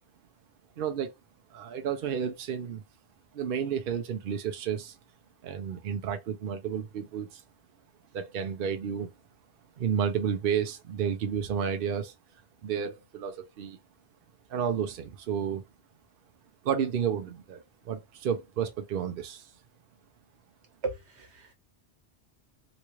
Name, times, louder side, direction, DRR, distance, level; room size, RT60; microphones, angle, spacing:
voice 1, 0.8-1.1 1.5-2.8 3.3-5.0 5.4-7.4 8.1-9.1 9.8-12.1 12.6-13.8 14.5-15.6 16.6-19.5, right 8 dB, 60° right, 0.7 m, -31 dB
voice 2, 20.8-21.5, right 4 dB, 85° right, 1.4 m, -36 dB
3.9 x 2.3 x 3.0 m
omnidirectional pair, 1.1 m